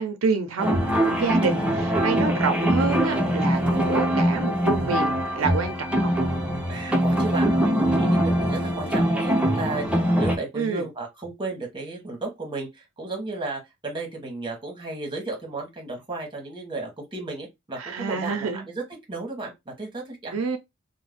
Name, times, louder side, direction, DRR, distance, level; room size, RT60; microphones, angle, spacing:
voice 1, 0.0-6.1 10.5-10.8 17.8-18.6 20.3-20.6, right 4 dB, 80° right, 0.5 m, -27 dB
sound 1, 0.6-10.4, equal, 5° right, 0.6 m, -23 dB
voice 2, 6.7-18.8 19.1-20.4, right 3 dB, 25° right, 1.0 m, -34 dB
2.5 x 2.0 x 3.4 m
head